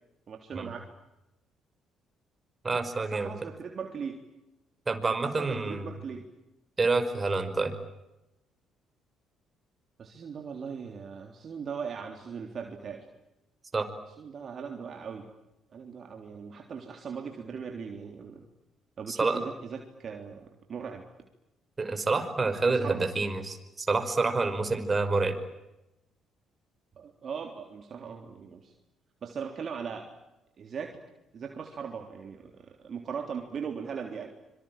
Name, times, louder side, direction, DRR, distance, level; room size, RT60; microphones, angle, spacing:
voice 1, 0.3-0.9 2.9-4.2 5.0-5.1 5.4-6.2 10.0-13.1 14.2-15.3 15.7-18.4 19.0-21.1 22.7-23.0 27.0-28.7 29.2-30.1 30.6-31.0 31.3-34.3, right 6 dB, 50° right, 3 dB, 3.5 m, -39 dB
voice 2, 2.6-3.3 4.9-5.9 6.8-7.8 13.7-13.9 19.1-19.4 21.8-25.4, right 3 dB, 30° right, 8 dB, 5.5 m, -28 dB
26.0 x 25.0 x 9.0 m, 0.93 s
hypercardioid pair, 55°, 0 cm